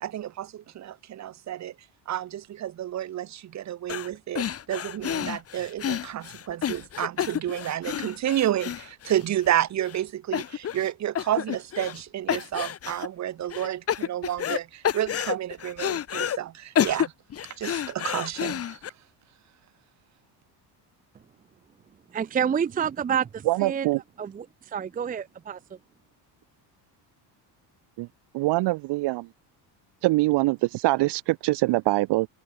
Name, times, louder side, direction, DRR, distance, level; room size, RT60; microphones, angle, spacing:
voice 1, 0.0-1.7 2.1-17.1 17.6-18.8, right 12 dB, 40° right, 1.6 m, -30 dB
sound 1, 3.9-4.1 4.4-9.5 9.9-10.0 10.3-10.9 11.2-12.0 12.3-13.1 13.5-14.6 14.8-16.4 16.8-18.9, left 9 dB, 35° left, 1.9 m, -29 dB
voice 2, 22.1-23.9 24.2-25.8, right 8 dB, 20° right, 0.7 m, -28 dB
voice 3, 23.5-24.0 28.0-28.1 28.3-29.3 30.0-32.3, right 20 dB, 70° right, 1.6 m, -23 dB
cardioid pair, 165°, 42 cm